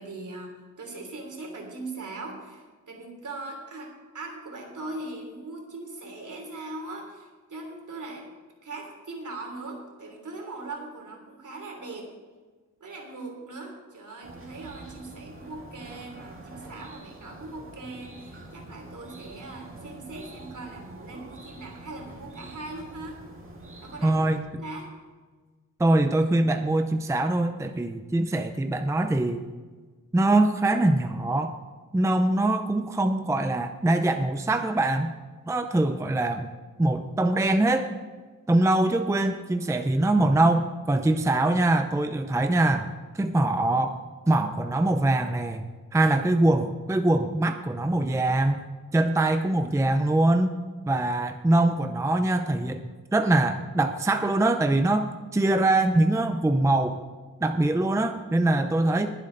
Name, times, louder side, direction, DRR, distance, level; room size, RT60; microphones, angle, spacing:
voice 1, 0.0-8.3 8.6-12.1 12.8-23.2 23.8-24.3 24.6-24.9, right 2 dB, 65° right, 1 dB, 3.2 m, -40 dB
sound 1, 14.2-24.4, right 2 dB, 40° right, 2.1 m, -45 dB
voice 2, 24.0-24.6 25.8-29.4 30.1-31.6 31.9-35.1 35.5-36.5 36.8-37.9 38.5-42.9 43.1-44.0 44.3-45.6 45.9-48.6 48.9-50.6 50.9-52.8 53.1-57.0 57.4-59.1, right 2 dB, 10° right, 7 dB, 0.5 m, -23 dB
21.0 x 7.9 x 3.9 m, 1.4 s
wide cardioid pair, 140°, 32 cm